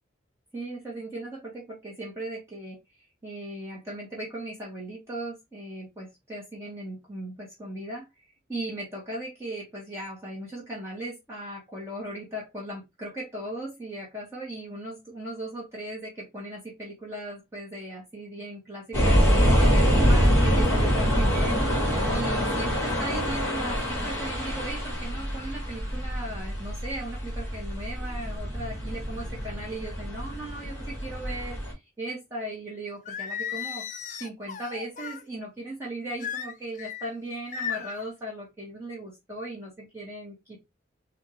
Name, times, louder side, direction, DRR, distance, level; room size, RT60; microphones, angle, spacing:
voice 1, 0.5-2.8 3.2-8.1 8.5-19.2 19.6-33.8 34.2-40.6, right 1 dB, 15° right, -6 dB, 1.7 m, -37 dB
sound 1, 18.9-31.7, equal, 15° left, 2.0 m, -25 dB
Singing, 33.1-35.2 36.2-37.1 37.5-38.0, left 8 dB, 40° left, 0.3 m, -35 dB
4.2 x 2.8 x 3.2 m, 0.21 s
head